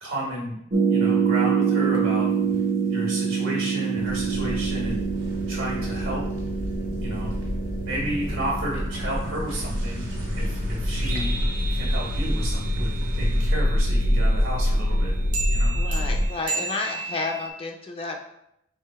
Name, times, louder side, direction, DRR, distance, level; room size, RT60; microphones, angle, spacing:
voice 1, 0.0-0.6 0.9-2.3 2.9-5.0 5.5-6.2 7.0-7.3 7.8-10.0 10.3-11.4 11.7-15.1 15.5-15.7, right 1 dB, 90° right, -5 dB, 1.5 m, -32 dB
sound 1, 0.7-13.7 15.3-17.5, right 6 dB, 40° right, 0.5 m, -28 dB
sound 2, 2.4-3.2 3.4-13.5, equal, 70° right, 1.3 m, -38 dB
sound 3, 4.0-16.3, left 1 dB, 80° left, 0.5 m, -26 dB
voice 2, 15.7-18.2, left 3 dB, 30° left, 3 dB, 0.3 m, -31 dB
3.8 x 3.3 x 4.2 m, 0.79 s
head